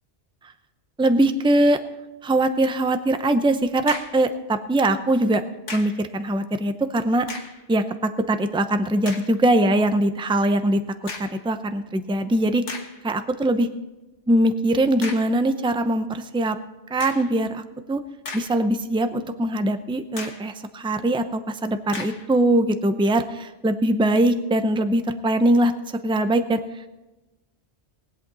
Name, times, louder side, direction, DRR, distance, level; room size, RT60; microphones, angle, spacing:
voice 1, 1.0-1.8 2.2-5.4 5.7-7.2 7.7-7.8 8.3-10.8 11.2-12.6 13.0-13.7 14.3-16.6 16.9-17.6 17.9-18.0 18.3-25.7 26.0-26.6, right 1 dB, 5° right, 9 dB, 0.5 m, -21 dB
sound 1, 3.6-4.3 5.7-6.1 7.2-7.7 8.3-8.4 9.0-9.4 11.1-11.5 12.1-12.2 12.7-13.0 15.0-15.4 17.0-17.4 18.0-18.8 19.2-19.3 20.2-20.5 21.9-22.3, left 3 dB, 85° left, 1.8 m, -36 dB
21.0 x 8.4 x 4.0 m, 1.1 s
omnidirectional pair, 1.2 m